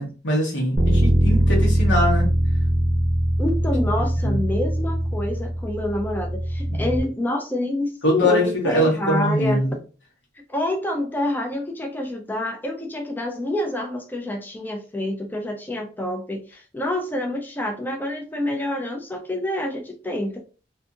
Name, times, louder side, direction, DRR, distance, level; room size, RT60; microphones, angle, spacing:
voice 1, 0.0-2.3 4.2-4.4 6.7-6.9 8.0-9.7, left 1 dB, 85° left, -2 dB, 1.2 m, -22 dB
Bass guitar, 0.8-7.0, equal, 15° right, 0.8 m, -21 dB
voice 2, 3.4-9.8 10.5-20.4, left 1 dB, 10° left, 2 dB, 0.4 m, -27 dB
2.6 x 2.6 x 2.4 m, 0.36 s
head